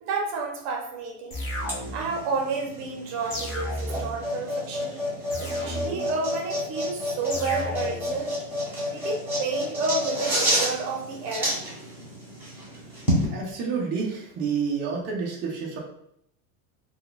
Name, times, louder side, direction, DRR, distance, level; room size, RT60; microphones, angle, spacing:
voice 1, 0.0-1.4 1.9-5.0 5.4-8.4 8.9-11.6, right 4 dB, 40° right, 1 dB, 0.8 m, -31 dB
sound 1, 1.3-2.2 3.3-4.2 5.3-6.2 7.3-8.2, equal, 30° left, 0.7 m, -33 dB
sound 2, 1.6-13.3, equal, 5° right, 0.8 m, -30 dB
voice 2, 13.3-15.8, right 5 dB, 25° right, -3 dB, 0.4 m, -29 dB
2.3 x 2.2 x 3.7 m, 0.72 s
supercardioid pair, 160°, 43 cm